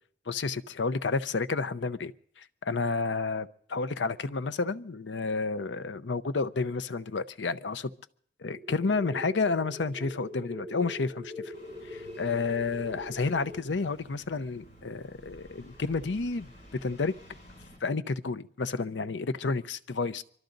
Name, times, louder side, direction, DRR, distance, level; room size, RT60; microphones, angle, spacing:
voice 1, 0.3-2.1 2.4-7.9 8.4-11.3 11.9-16.5 16.8-17.2 17.8-20.2, left 4 dB, 75° left, 12 dB, 0.7 m, -30 dB
sound 1, 8.6-13.6, equal, 10° right, 3.0 m, -42 dB
Engine starting, 11.5-17.8, equal, 40° left, 7.3 m, -52 dB
24.0 x 13.0 x 3.9 m, 0.62 s
head